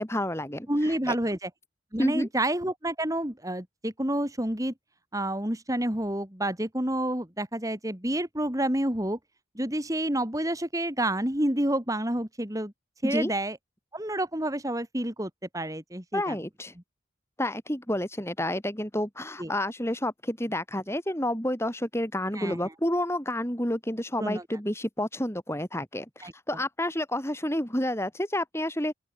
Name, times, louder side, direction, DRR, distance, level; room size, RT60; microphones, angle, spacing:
voice 1, 0.0-1.1 2.0-2.3 13.0-13.3 16.1-16.7 17.4-28.9, left 1 dB, 15° left, 6.0 m, -30 dB
voice 2, 0.7-1.5 1.9-4.7 5.1-9.2 9.6-12.7 13.0-13.6 13.9-16.3 19.4-19.5 22.3-22.6 24.2-24.4 26.2-26.3, right 1 dB, 15° right, 2.4 m, -29 dB
open air
head